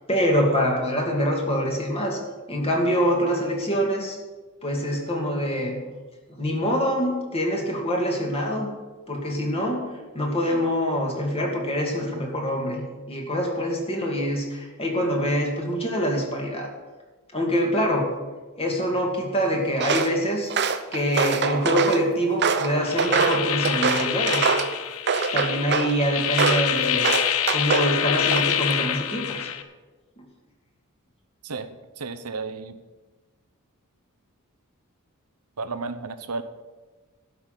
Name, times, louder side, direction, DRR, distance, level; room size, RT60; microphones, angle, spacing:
voice 1, 0.1-2.2 2.5-4.2 4.6-5.8 6.3-8.7 9.1-9.8 10.1-12.8 13.1-16.7 17.3-18.1 18.6-20.5 20.9-24.5 25.3-27.1 27.5-29.5 30.2-30.3, equal, 25° left, 0 dB, 2.4 m, -25 dB
Walk footsteps, 19.8-20.1 20.5-22.0 22.4-24.7 25.1-25.9 26.4-26.7 27.0-27.9 28.3-28.7, right 5 dB, 50° right, 0.8 m, -24 dB
sound 1, 22.8-29.6, left 10 dB, 70° left, 0.7 m, -26 dB
voice 2, 32.0-32.8 35.6-36.4, right 4 dB, 85° right, 10 dB, 0.9 m, -32 dB
12.0 x 6.2 x 9.1 m, 1.3 s
head